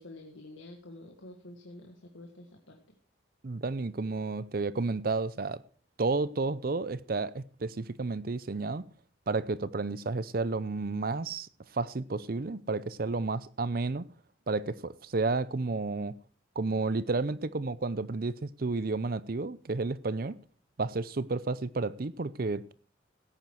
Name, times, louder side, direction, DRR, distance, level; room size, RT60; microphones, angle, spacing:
voice 1, 0.0-2.8, left 1 dB, 80° left, 1.8 m, -48 dB
voice 2, 3.4-5.6 6.0-8.8 9.3-14.1 14.5-16.1 16.6-20.4 20.8-22.7, right 3 dB, 50° right, 0.6 m, -31 dB
16.5 x 9.2 x 4.8 m
head